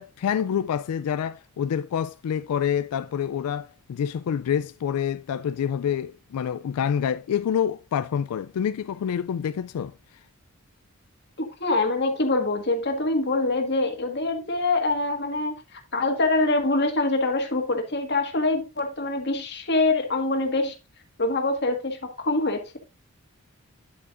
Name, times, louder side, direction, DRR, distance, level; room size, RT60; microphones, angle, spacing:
voice 1, 0.0-9.9, left 8 dB, 90° left, 0.3 m, -27 dB
voice 2, 11.6-20.7 21.2-22.8, left 2 dB, 50° left, 1.6 m, -24 dB
9.1 x 8.4 x 2.5 m
head